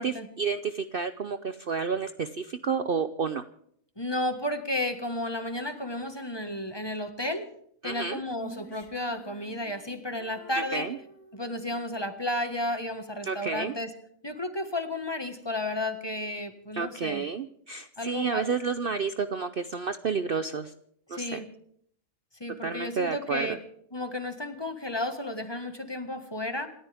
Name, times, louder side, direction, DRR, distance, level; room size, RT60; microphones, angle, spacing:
voice 1, 0.0-3.4 7.8-8.2 10.6-11.0 13.2-13.7 16.7-20.7 21.1-21.4 22.6-23.6, right 5 dB, 50° right, 10 dB, 0.8 m, -30 dB
voice 2, 4.0-7.5 7.8-10.9 11.3-13.9 14.2-17.2 18.0-18.4 21.1-21.5 22.4-23.6 23.9-26.7, left 1 dB, 20° left, 7 dB, 1.6 m, -32 dB
Female singing, 8.3-11.9, right 1 dB, 60° left, 2.5 m, -49 dB
28.5 x 13.5 x 3.5 m, 0.67 s
omnidirectional pair, 1.5 m